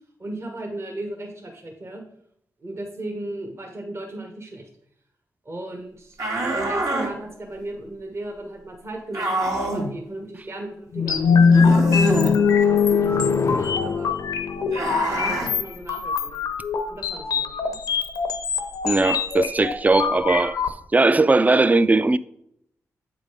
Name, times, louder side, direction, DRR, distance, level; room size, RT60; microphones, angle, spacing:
voice 1, 0.2-2.0 2.6-4.7 5.4-6.2 6.5-14.1 14.9-16.5 16.9-17.8, right 1 dB, 45° right, 1.3 m, -36 dB
sound 1, 6.2-7.1 9.1-9.9 11.5-12.3 14.7-15.5, right 2 dB, 70° right, 2.0 m, -25 dB
sound 2, 10.9-15.1, left 5 dB, 50° left, 0.4 m, -19 dB
sound 3, 11.1-20.7, left 6 dB, 85° left, 0.7 m, -27 dB
voice 2, 18.8-20.6 20.9-22.2, right 3 dB, 25° right, 0.4 m, -18 dB
8.1 x 3.8 x 5.0 m
cardioid pair, 55°, 6 cm